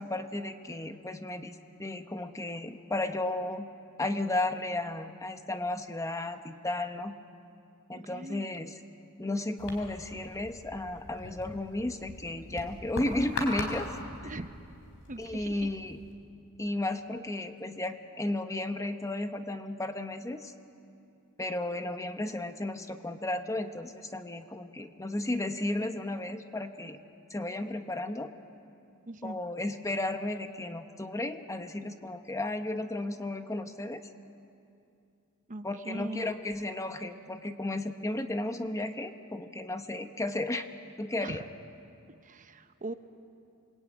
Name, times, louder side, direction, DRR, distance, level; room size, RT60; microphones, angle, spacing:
voice 1, 0.0-3.7 4.0-7.1 7.9-8.7 9.2-13.9 15.2-16.0 16.6-20.5 21.4-27.0 27.3-28.3 29.2-34.0 35.6-40.7 41.0-41.5, left 2 dB, 15° left, 7 dB, 1.0 m, -34 dB
voice 2, 8.0-8.5 14.2-14.5 15.1-15.7 29.1-29.4 35.5-36.3 41.2-41.4 42.2-42.9, right 2 dB, 35° right, 9 dB, 0.9 m, -40 dB
sound 1, 9.6-16.1, left 2 dB, 60° left, 4.6 m, -41 dB
28.0 x 21.5 x 9.1 m, 2.6 s
head